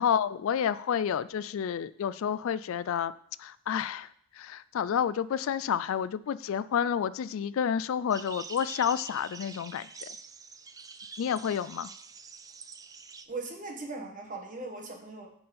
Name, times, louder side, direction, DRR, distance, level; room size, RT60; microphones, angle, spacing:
voice 1, 0.0-3.1 3.4-4.1 4.4-9.9 11.2-11.9, left 8 dB, 65° left, 17 dB, 0.3 m, -29 dB
sound 1, 8.1-13.3, right 5 dB, 15° right, 0.4 m, -45 dB
voice 2, 13.3-15.3, right 3 dB, 35° right, 2 dB, 1.5 m, -39 dB
8.8 x 4.3 x 6.8 m, 0.65 s
head